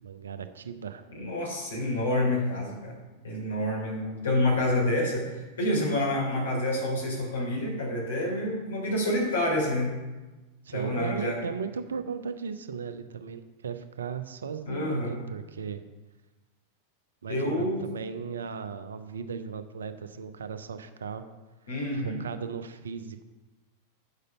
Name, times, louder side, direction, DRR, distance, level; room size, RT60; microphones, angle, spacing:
voice 1, 0.0-1.0 10.6-15.8 17.2-21.2 21.9-23.2, right 6 dB, 70° right, 10 dB, 0.7 m, -36 dB
voice 2, 1.1-2.9 3.2-9.9 10.7-11.4 14.7-15.1 17.3-17.8 21.7-22.2, left 1 dB, 70° left, -3 dB, 3.6 m, -28 dB
9.0 x 6.7 x 5.4 m, 1.2 s
figure-of-eight pair, 90°, 0 cm